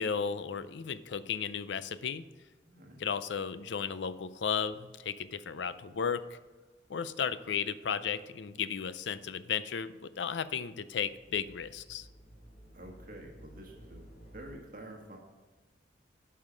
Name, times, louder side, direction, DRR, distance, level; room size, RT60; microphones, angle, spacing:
voice 1, 0.0-2.2 3.0-6.4 6.9-12.1, left 7 dB, 80° left, 14 dB, 0.5 m, -34 dB
voice 2, 2.6-3.0 12.7-15.2, right 1 dB, 50° right, 1 dB, 1.5 m, -48 dB
sound 1, 11.2-14.5, right 1 dB, 55° left, 2.7 m, -54 dB
11.0 x 5.7 x 5.1 m, 1.3 s
head